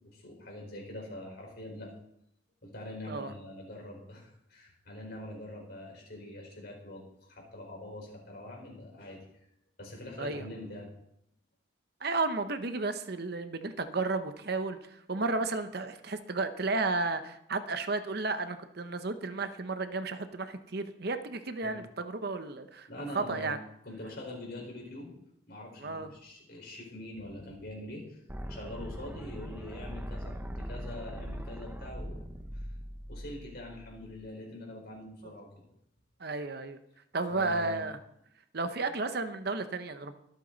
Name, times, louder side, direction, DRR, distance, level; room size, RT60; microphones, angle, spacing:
voice 1, 0.0-1.9 2.6-9.3 9.8-10.9 21.6-21.8 22.9-23.6 23.8-25.1 25.5-32.3 32.5-32.7 33.1-35.5 37.3-37.8, left 1 dB, 50° left, -1 dB, 4.8 m, -44 dB
voice 2, 12.0-22.9 23.1-23.6 25.8-26.1 36.2-36.8 37.1-38.0 38.5-40.1, right 3 dB, 55° right, 9 dB, 0.9 m, -33 dB
sound 1, 28.3-34.3, equal, 10° right, 0.7 m, -41 dB
23.5 x 8.3 x 4.1 m, 0.76 s
head